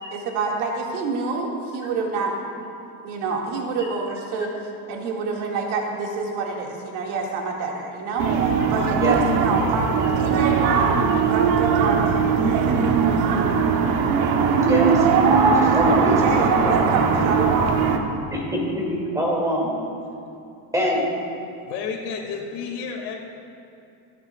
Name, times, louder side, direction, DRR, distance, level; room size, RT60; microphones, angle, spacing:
voice 1, 0.1-2.7 3.0-8.3 8.7-13.6 16.0-18.2, right 4 dB, 85° right, -1 dB, 2.2 m, -27 dB
sound 1, 8.2-18.0, right 6 dB, 60° right, 1.1 m, -20 dB
voice 2, 14.6-16.8 18.3-19.7 20.7-21.0, equal, 10° right, -3 dB, 2.5 m, -24 dB
voice 3, 21.6-23.2, left 6 dB, 75° left, 0 dB, 2.4 m, -31 dB
26.0 x 9.7 x 2.4 m, 2.8 s
cardioid pair, 155°, 42 cm